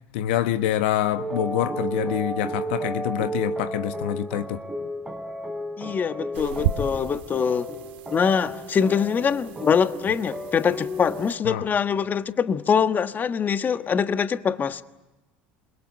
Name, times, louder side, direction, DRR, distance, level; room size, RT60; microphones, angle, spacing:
voice 1, 0.1-4.6 11.4-11.6, left 12 dB, 70° left, 1.2 m, -26 dB
sound 1, 1.2-11.3, right 1 dB, 10° right, 4.3 m, -33 dB
voice 2, 5.8-7.7 8.1-14.8, left 7 dB, 30° left, 1.4 m, -23 dB
sound 2, 6.3-11.3, right 9 dB, 75° right, 2.2 m, -34 dB
28.0 x 22.5 x 8.7 m
hypercardioid pair, 75°, 6 cm